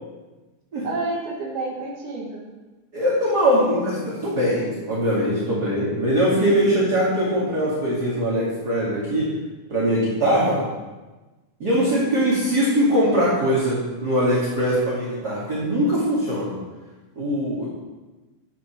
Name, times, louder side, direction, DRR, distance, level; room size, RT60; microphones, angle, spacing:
voice 1, 0.8-2.5 11.8-12.3, right 3 dB, 70° right, -2 dB, 3.4 m, -30 dB
voice 2, 2.9-9.3 9.7-10.6 11.6-16.5 17.2-17.7, equal, 30° right, -8 dB, 2.7 m, -21 dB
13.0 x 6.0 x 6.2 m, 1.2 s
omnidirectional pair, 3.7 m